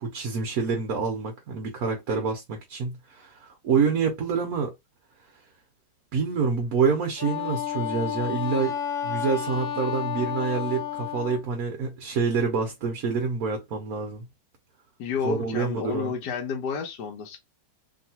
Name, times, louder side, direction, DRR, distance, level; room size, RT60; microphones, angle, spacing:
voice 1, 0.0-4.7 6.1-8.7 9.0-14.3 15.2-16.1, right 5 dB, 60° right, 1.1 m, -27 dB
Wind instrument woodwind instrument, 7.2-11.4, left 10 dB, 90° left, 0.6 m, -31 dB
voice 2, 15.0-17.4, left 6 dB, 65° left, 1.3 m, -30 dB
3.1 x 2.8 x 2.8 m
omnidirectional pair, 2.0 m